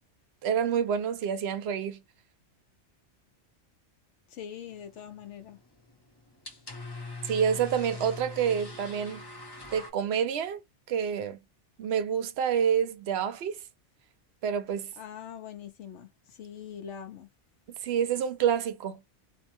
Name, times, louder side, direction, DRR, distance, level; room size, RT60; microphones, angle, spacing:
voice 1, 0.4-2.0 7.2-9.2 9.7-10.6 10.9-11.4 11.8-13.6 14.4-14.9 17.8-19.0, right 8 dB, 65° right, 0.8 m, -28 dB
voice 2, 4.3-5.6 15.0-17.3, left 8 dB, 75° left, 0.9 m, -43 dB
sound 1, 4.7-9.9, left 3 dB, 25° left, 0.7 m, -43 dB
2.6 x 2.1 x 2.8 m
omnidirectional pair, 1.2 m